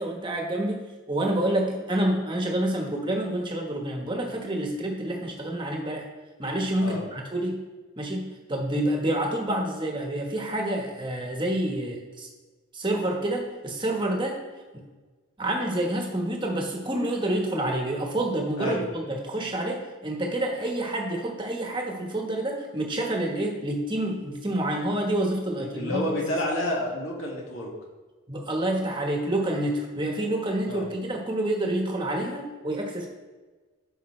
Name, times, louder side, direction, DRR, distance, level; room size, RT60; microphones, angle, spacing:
voice 1, 0.0-6.1 6.4-7.6 8.0-12.3 12.7-14.4 14.7-14.8 15.4-26.0 28.3-33.1, right 1 dB, 20° right, 1 dB, 1.2 m, -28 dB
voice 2, 25.6-27.7 30.7-30.9, left 1 dB, 70° left, -3 dB, 2.1 m, -29 dB
12.5 x 5.3 x 3.2 m, 1.3 s
head